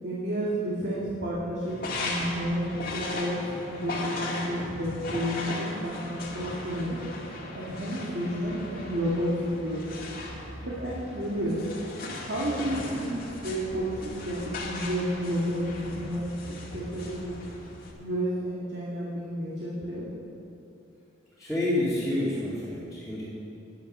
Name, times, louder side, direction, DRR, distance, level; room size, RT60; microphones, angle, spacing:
voice 1, 0.0-7.1 7.5-10.1 10.6-11.7 12.1-17.4 18.0-20.1, equal, 55° right, -6 dB, 2.0 m, -31 dB
sound 1, 1.6-17.9, left 2 dB, 45° left, 2.0 m, -37 dB
voice 2, 21.4-23.2, left 1 dB, ahead, -11 dB, 2.4 m, -28 dB
11.0 x 9.4 x 6.7 m, 2.8 s
head